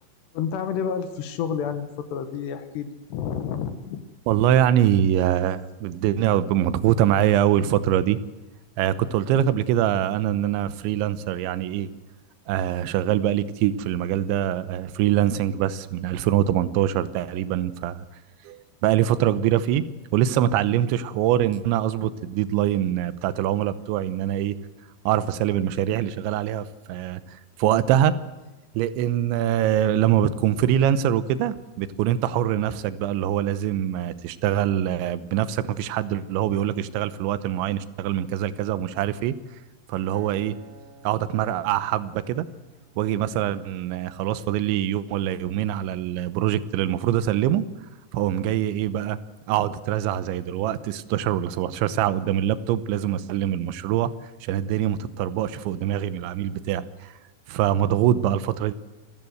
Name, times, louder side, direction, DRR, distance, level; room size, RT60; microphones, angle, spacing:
voice 1, 0.3-4.0 57.7-57.8, left 7 dB, 70° left, 9 dB, 3.0 m, -30 dB
voice 2, 4.3-8.2 8.8-11.9 12.5-18.0 18.4-19.8 20.1-24.6 25.1-28.2 28.8-39.3 39.9-40.5 41.0-42.5 43.0-47.6 48.1-49.2 49.5-54.1 54.4-57.1 57.5-58.7, right 11 dB, 75° right, 14 dB, 3.0 m, -24 dB
Acoustic guitar, 40.1-44.5 45.1-45.3, right 4 dB, 55° right, 3.4 m, -52 dB
26.5 x 14.5 x 7.9 m, 1.1 s
omnidirectional pair, 5.8 m